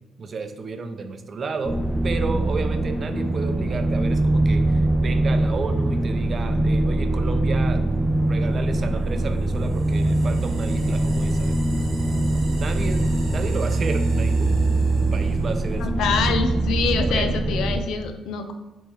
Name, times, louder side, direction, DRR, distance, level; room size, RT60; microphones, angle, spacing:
voice 1, 0.2-1.8 2.0-7.8 8.2-11.6 12.2-14.6 15.1-16.4 17.0-17.3, right 4 dB, 45° right, 7 dB, 0.5 m, -32 dB
sound 1, 1.6-17.8, right 2 dB, ahead, 0.5 m, -22 dB
sound 2, 9.1-15.9, right 4 dB, 80° right, 1.0 m, -45 dB
voice 2, 15.8-18.5, left 5 dB, 80° left, 7 dB, 0.5 m, -25 dB
3.5 x 3.1 x 4.5 m, 1.1 s
cardioid pair, 90°, 0 cm